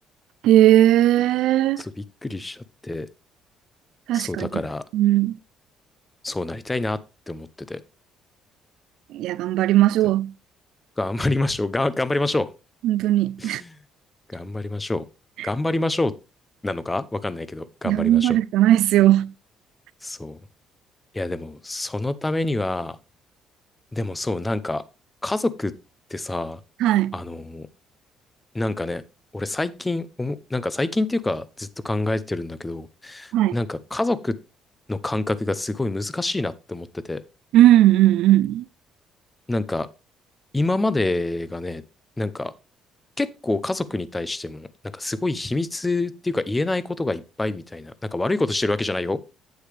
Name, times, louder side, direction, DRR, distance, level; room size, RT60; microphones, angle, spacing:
voice 1, 0.4-1.8 4.1-4.5 4.9-5.4 9.1-10.3 12.8-13.6 15.4-15.5 17.8-19.3 26.8-27.2 33.3-33.6 37.5-38.7, right 13 dB, 75° right, 0.4 m, -18 dB
voice 2, 2.2-3.1 4.1-4.8 6.2-7.0 7.3-7.8 11.0-12.5 13.4-13.8 14.3-15.0 15.4-16.1 16.6-18.4 20.0-20.4 21.1-23.0 23.9-24.8 25.2-25.7 26.1-26.6 27.1-27.7 28.5-29.0 29.3-34.3 34.9-37.2 39.5-39.9 40.5-41.8 42.2-42.5 43.2-44.7 44.9-49.2, left 2 dB, 10° left, 0.6 m, -26 dB
8.6 x 8.0 x 3.3 m
cardioid pair, 155°, 0 cm